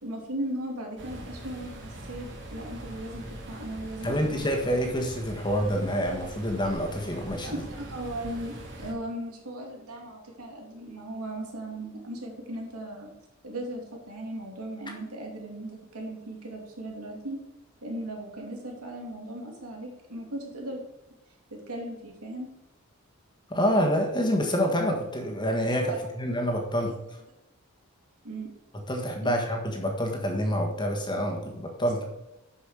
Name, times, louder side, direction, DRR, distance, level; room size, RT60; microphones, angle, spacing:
voice 1, 0.0-4.4 7.4-13.1 13.4-17.4 17.8-20.8 21.5-22.5 25.9-26.0 26.8-26.9 28.2-28.5 29.2-29.4, right 1 dB, 85° right, 0 dB, 2.7 m, -37 dB
sound 1, 1.0-8.9, right 1 dB, 55° right, 2.4 m, -42 dB
voice 2, 4.0-7.6 23.5-27.2 28.9-32.0, equal, 20° left, 1 dB, 1.6 m, -27 dB
11.5 x 5.6 x 5.1 m, 0.90 s
head